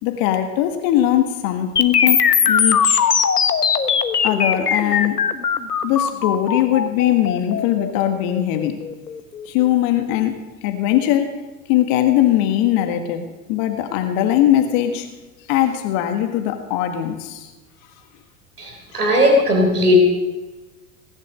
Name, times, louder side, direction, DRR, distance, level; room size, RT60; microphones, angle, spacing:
voice 1, 0.0-3.0 4.2-5.2 5.8-8.8 9.5-11.4 11.7-15.1 15.5-17.5 18.9-19.0, left 12 dB, 50° left, 6 dB, 1.8 m, -20 dB
sound 1, 1.8-9.7, left 7 dB, 85° left, 1.3 m, -20 dB
voice 2, 18.6-20.0, left 1 dB, 85° right, 2 dB, 3.9 m, -16 dB
19.5 x 11.0 x 6.5 m, 1.2 s
figure-of-eight pair, 85°, 45 cm